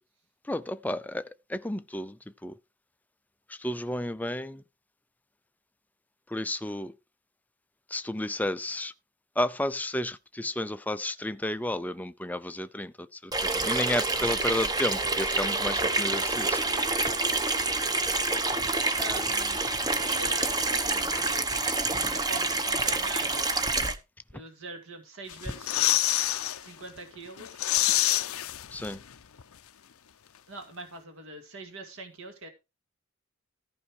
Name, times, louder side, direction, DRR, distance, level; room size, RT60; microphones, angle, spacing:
voice 1, 0.5-1.2 1.5-2.2 2.4-2.5 3.5-4.6 6.3-6.9 7.9-8.9 9.4-12.9 13.2-16.6 28.7-29.0, left 1 dB, 5° left, 0.5 m, -32 dB
Water tap faucet / Sink (filling or washing), 13.3-24.0, right 3 dB, 15° right, 0.8 m, -27 dB
voice 2, 19.0-19.6 20.0-21.6 21.9-23.5 24.3-25.8 26.6-27.7 30.5-32.5, right 2 dB, 65° right, 2.1 m, -43 dB
sound 1, 25.3-26.6 27.0-27.1 27.4-29.1 29.4-29.5, left 14 dB, 70° left, 0.6 m, -26 dB
14.0 x 5.4 x 4.8 m
head